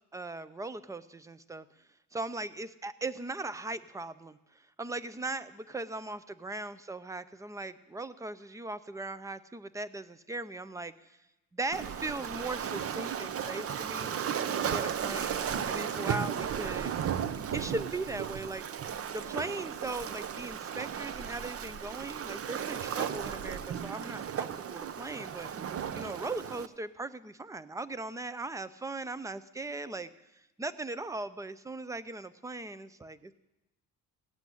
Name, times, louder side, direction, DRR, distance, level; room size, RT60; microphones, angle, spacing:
voice 1, 0.1-1.7 2.1-4.4 4.8-10.9 11.5-14.1 14.6-17.0 17.5-18.6 19.1-25.5 25.9-30.1 30.6-33.3, right 2 dB, 10° right, 14 dB, 0.5 m, -38 dB
Waves surf, 11.7-26.7, right 8 dB, 40° right, 0.7 m, -35 dB
17.0 x 7.9 x 9.9 m, 0.96 s
cardioid pair, 140°, 35 cm